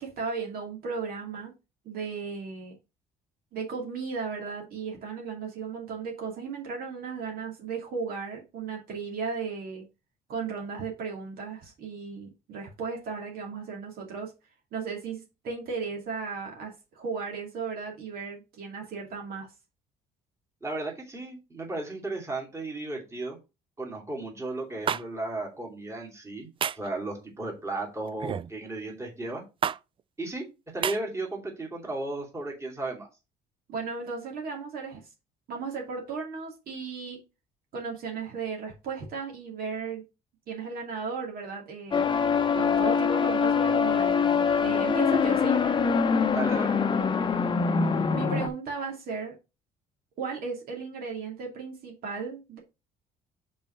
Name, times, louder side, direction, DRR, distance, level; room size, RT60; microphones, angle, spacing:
voice 1, 0.0-1.5 1.8-2.7 3.5-9.8 10.3-14.3 14.7-19.5 33.7-35.0 35.5-37.2 37.7-40.0 40.5-42.1 42.5-45.6 48.1-49.3 50.2-52.6, right 5 dB, 60° right, 0 dB, 2.4 m, -35 dB
voice 2, 20.6-23.4 23.8-26.5 26.8-29.4 30.2-30.4 30.7-33.1 46.3-46.8, right 2 dB, 15° right, -1 dB, 2.6 m, -34 dB
sound 1, 24.9-25.0 26.6-26.9 28.2-28.5 29.6-29.8 30.8-31.0, right 8 dB, 30° right, 0.3 m, -28 dB
sound 2, 41.9-48.5, left 6 dB, 30° left, 0.8 m, -24 dB
5.3 x 4.4 x 5.5 m, 0.27 s
cardioid pair, 110°, 17 cm